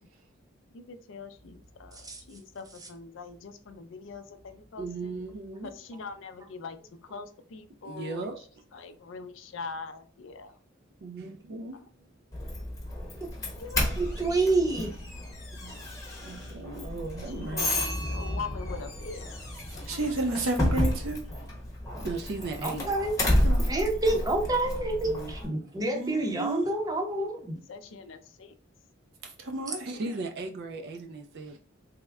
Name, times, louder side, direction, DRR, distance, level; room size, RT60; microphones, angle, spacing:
voice 1, 0.7-5.1 5.6-6.8 7.1-8.3 8.7-10.6 13.2-13.3 13.6-13.9 17.3-17.7 18.1-19.3 19.7-20.1 27.7-28.5, left 4 dB, 65° left, 0.4 m, -42 dB
voice 2, 4.8-5.7 7.8-8.5 8.7-8.8 11.0-12.1 14.2-14.3 15.6-15.8 16.2-17.8 19.8-19.9 22.0-22.9 25.0-25.8 29.9-31.6, right 3 dB, 50° right, 0.3 m, -38 dB
Doorbell, 12.3-25.5, left 1 dB, 15° left, 0.9 m, -31 dB
voice 3, 14.0-14.9 21.9-22.0 22.6-23.1 23.6-27.5 29.7-29.8, right 2 dB, 20° right, 0.6 m, -28 dB
voice 4, 19.9-21.2 23.4-23.6 25.8-26.6 29.4-30.0, right 2 dB, 85° right, 0.9 m, -31 dB
3.5 x 2.1 x 3.3 m
head